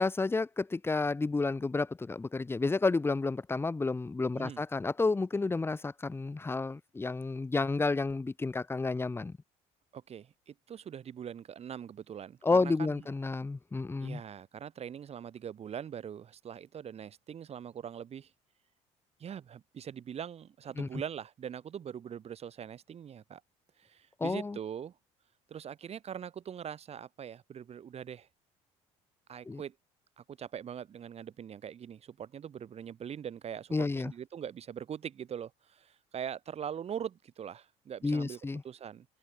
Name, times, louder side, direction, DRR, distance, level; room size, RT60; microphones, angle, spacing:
voice 1, 0.0-9.4 12.4-14.2 20.8-20.9 24.2-24.6 29.5-29.6 33.7-34.1 38.0-38.6, left 3 dB, 15° left, 1.0 m, -31 dB
voice 2, 9.9-12.9 14.0-18.3 19.2-23.4 23.8-24.9 25.5-28.3 29.3-29.7 30.2-38.4 38.6-39.0, right 8 dB, 45° right, 3.0 m, -42 dB
open air
supercardioid pair, 80°, 14 cm